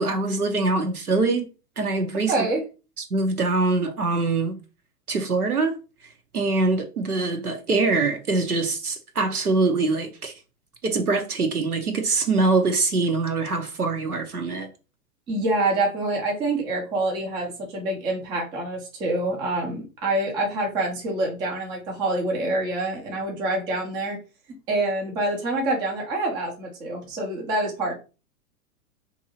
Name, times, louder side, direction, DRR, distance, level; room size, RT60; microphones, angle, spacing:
voice 1, 0.0-1.5 1.8-2.5 3.1-4.6 5.1-5.8 6.3-10.3 10.8-14.7, right 3 dB, 90° right, 0.8 m, -23 dB
voice 2, 2.3-2.6 15.3-24.2 24.7-27.9, right 2 dB, 10° right, 0.3 m, -26 dB
2.7 x 2.6 x 2.7 m
figure-of-eight pair, 100°, 44 cm